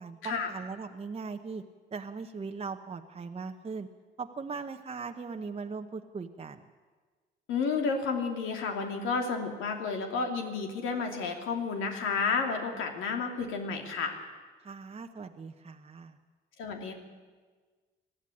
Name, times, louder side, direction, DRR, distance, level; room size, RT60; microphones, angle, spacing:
voice 1, 0.0-1.6 1.9-3.9 4.2-6.7 12.7-12.8 14.6-16.2, right 4 dB, 30° right, 5 dB, 1.0 m, -39 dB
voice 2, 7.5-14.1 16.6-16.9, left 5 dB, 85° left, 3 dB, 2.8 m, -31 dB
20.0 x 13.5 x 9.9 m, 1.4 s
cardioid pair, 90°, 20 cm